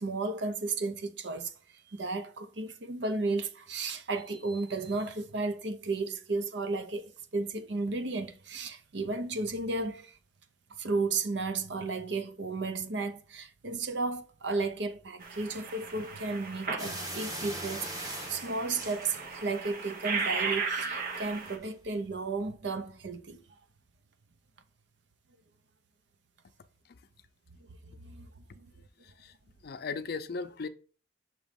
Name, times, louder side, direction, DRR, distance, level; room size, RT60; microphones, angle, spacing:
voice 1, 0.0-1.5 1.9-10.1 10.8-23.4 27.9-28.3 28.6-28.7, right 3 dB, 70° right, 0.7 m, -34 dB
sound 1, 15.2-21.6, right 4 dB, 55° right, 1.0 m, -36 dB
sound 2, 16.8-19.6 20.0-20.5 21.1-21.3 21.6-21.7, right 1 dB, 20° right, 1.3 m, -41 dB
voice 2, 29.0-29.3 29.6-30.7, left 4 dB, 55° left, 0.5 m, -37 dB
6.1 x 3.1 x 5.1 m
head